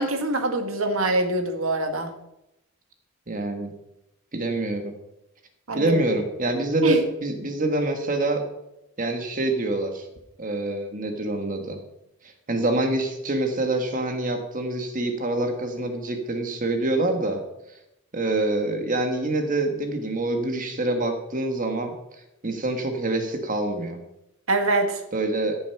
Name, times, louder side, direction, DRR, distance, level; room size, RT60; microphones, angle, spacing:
voice 1, 0.0-2.1 5.7-6.0 6.8-7.0 24.5-25.0, right 2 dB, 70° right, 5 dB, 1.8 m, -24 dB
voice 2, 3.3-3.7 4.3-4.9 5.7-8.4 9.0-10.1 10.4-11.8 12.5-17.4 18.1-21.9 22.4-24.0 25.1-25.6, right 2 dB, 40° right, 5 dB, 1.4 m, -26 dB
13.5 x 7.1 x 5.7 m, 0.86 s
head